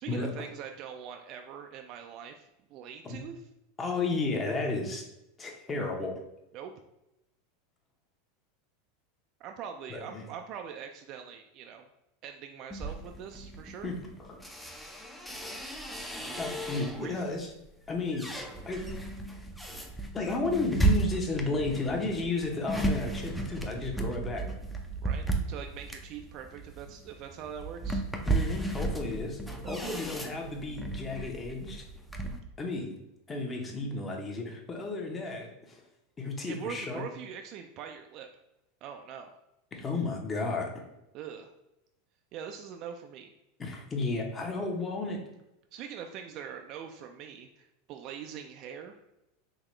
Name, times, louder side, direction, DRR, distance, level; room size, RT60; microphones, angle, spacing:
voice 1, 0.0-3.4 6.5-6.7 9.4-11.8 12.2-13.9 16.7-17.3 25.0-28.0 29.6-30.0 36.5-38.3 38.8-39.3 41.1-41.5 42.3-43.3 45.7-49.0, right 8 dB, 50° right, 5 dB, 0.3 m, -43 dB
voice 2, 3.8-5.0 5.4-6.2 9.9-10.2 13.8-14.4 16.4-17.5 17.9-18.9 20.1-24.5 28.3-29.4 29.7-31.8 32.6-33.0 33.3-35.8 36.2-37.0 39.7-40.7 43.6-45.2, left 3 dB, 25° left, 1 dB, 0.9 m, -33 dB
sound 1, 12.7-17.2 17.7-32.4, right 2 dB, 5° left, 0.5 m, -34 dB
3.9 x 2.8 x 3.2 m, 0.87 s
hypercardioid pair, 105°, 0 cm